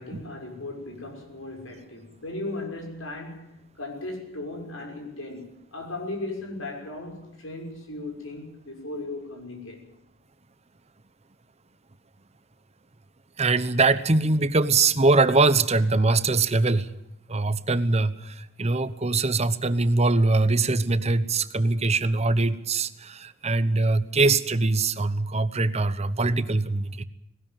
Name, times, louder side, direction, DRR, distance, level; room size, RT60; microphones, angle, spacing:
voice 1, 0.0-9.9, left 2 dB, 85° left, 6.3 m, -37 dB
voice 2, 13.4-16.9 17.3-27.0, right 3 dB, 30° right, 1.0 m, -22 dB
19.0 x 18.5 x 9.2 m
head